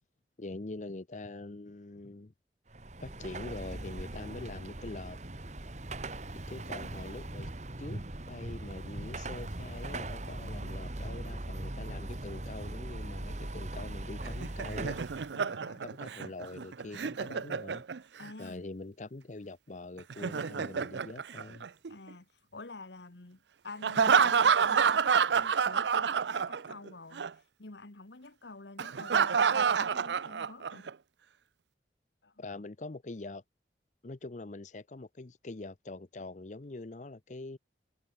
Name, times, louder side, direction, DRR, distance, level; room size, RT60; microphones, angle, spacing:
voice 1, 0.4-2.3 3.0-5.2 6.5-7.5 7.8-15.0 15.8-17.8 18.4-21.7 32.4-33.4 34.0-37.6, left 2 dB, 45° left, 0.7 m, -44 dB
Car passing by / Traffic noise roadway noise / Engine, 2.7-15.3, right 1 dB, 40° right, 1.8 m, -40 dB
Laughter, 14.2-18.3 20.0-22.1 23.8-26.9 27.1-27.3 28.8-30.9, right 6 dB, 85° right, 0.6 m, -28 dB
voice 2, 15.3-15.8 18.2-18.6 21.9-27.3 27.6-30.8 32.2-32.3, left 3 dB, 85° left, 1.6 m, -49 dB
head